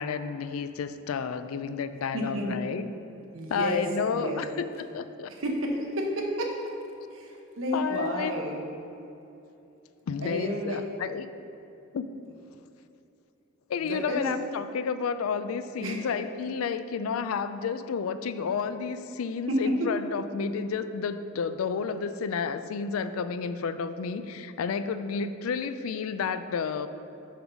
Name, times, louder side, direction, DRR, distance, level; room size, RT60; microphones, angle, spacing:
voice 1, 0.0-2.9 3.5-5.3 7.7-8.4 10.1-11.3 11.9-12.1 13.7-26.9, left 6 dB, 85° left, 11 dB, 0.4 m, -31 dB
voice 2, 2.1-2.6 3.3-3.9 4.1-4.4 5.3-6.5 7.1-8.7 10.2-10.8 13.8-14.3 15.8-16.0 19.5-19.7, equal, 70° right, 0 dB, 1.0 m, -30 dB
7.1 x 3.9 x 5.9 m, 2.8 s
head